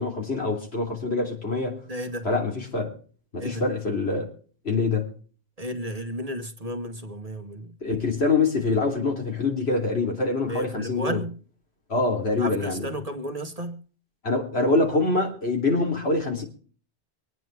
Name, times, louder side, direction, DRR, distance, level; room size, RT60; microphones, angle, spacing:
voice 1, 0.0-1.8 2.2-2.9 3.3-4.3 4.7-5.1 7.8-11.2 11.9-12.9 14.2-16.4, left 3 dB, 70° left, 3.5 m, -25 dB
voice 2, 1.9-2.3 3.4-3.6 5.6-7.7 10.5-11.4 12.4-13.8, equal, 35° right, 1.4 m, -33 dB
25.0 x 9.3 x 3.3 m
omnidirectional pair, 1.1 m